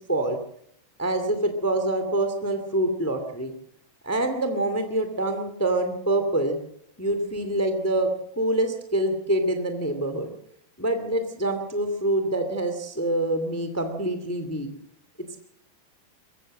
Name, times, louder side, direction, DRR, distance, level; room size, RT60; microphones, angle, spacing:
voice 1, 1.0-3.5 4.0-6.6 7.0-8.1 8.3-10.3 10.8-14.7, right 1 dB, 20° left, 7 dB, 0.4 m, -25 dB
22.5 x 15.5 x 7.5 m, 0.72 s
omnidirectional pair, 4.9 m